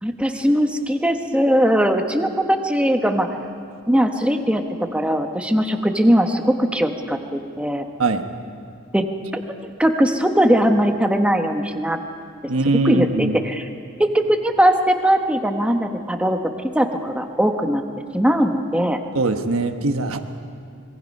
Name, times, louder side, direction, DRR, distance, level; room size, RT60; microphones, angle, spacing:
voice 1, 0.0-3.3 3.9-4.6 4.9-7.9 8.9-9.1 9.6-12.0 12.8-13.7 14.0-16.4 16.7-17.8 18.1-19.0, equal, 5° right, 5 dB, 1.2 m, -20 dB
voice 2, 12.5-13.4 19.1-20.2, right 3 dB, 70° right, 7 dB, 1.3 m, -21 dB
25.0 x 22.0 x 5.4 m, 2.4 s
head